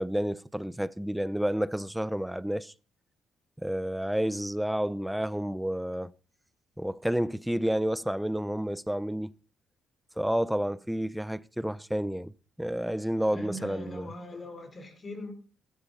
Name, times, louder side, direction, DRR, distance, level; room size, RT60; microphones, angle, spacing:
voice 1, 0.0-2.7 3.6-6.1 6.8-9.3 10.2-12.3 12.6-14.1, equal, 5° right, 0.7 m, -30 dB
voice 2, 13.3-15.3, left 1 dB, 35° left, 5.1 m, -41 dB
15.5 x 13.0 x 4.2 m
cardioid pair, 90°, 0 cm